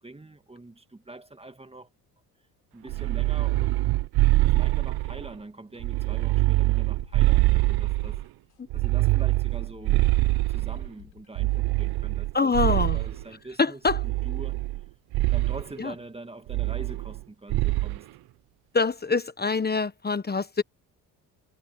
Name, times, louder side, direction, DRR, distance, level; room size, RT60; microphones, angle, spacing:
voice 1, 0.0-1.9 2.7-4.1 4.5-8.2 8.7-10.1 10.5-14.6 15.3-18.1, right 2 dB, 15° right, 2.0 m, -44 dB
sound 1, 2.9-5.3 5.8-8.2 8.7-10.9 11.4-13.2 13.9-14.8 15.1-15.6 16.5-17.2 17.5-18.0, right 19 dB, 80° right, 0.9 m, -24 dB
sound 2, 6.5-14.2 14.5-14.6 15.0-15.1, left 19 dB, 90° left, 6.9 m, -53 dB
voice 2, 12.3-13.0 13.6-14.0 15.8-15.9 18.7-20.6, left 4 dB, 25° left, 1.2 m, -25 dB
supercardioid pair, 70°, 37 cm